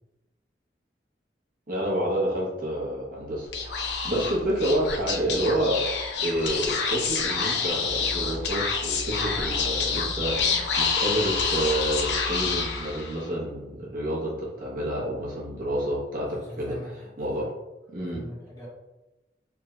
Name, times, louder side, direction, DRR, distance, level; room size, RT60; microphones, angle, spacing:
voice 1, 1.7-5.8 6.2-16.9 17.2-17.4 17.9-18.2, right 1 dB, 50° right, -5 dB, 0.9 m, -29 dB
Speech / Whispering, 3.5-13.3, left 5 dB, 75° left, 0.5 m, -28 dB
voice 2, 16.3-17.5 18.1-18.7, equal, 20° left, -5 dB, 1.0 m, -42 dB
3.4 x 2.4 x 3.1 m, 1.0 s
head